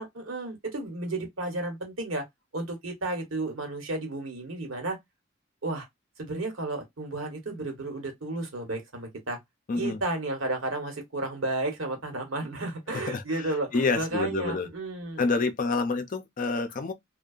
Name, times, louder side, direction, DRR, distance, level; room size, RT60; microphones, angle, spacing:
voice 1, 0.0-2.3 2.5-5.0 5.6-5.9 6.2-9.4 9.7-15.2, right 2 dB, 80° right, 1.1 m, -32 dB
voice 2, 9.7-10.0 12.9-14.7 15.2-16.9, left 3 dB, 40° left, 0.5 m, -28 dB
2.7 x 2.2 x 2.4 m
head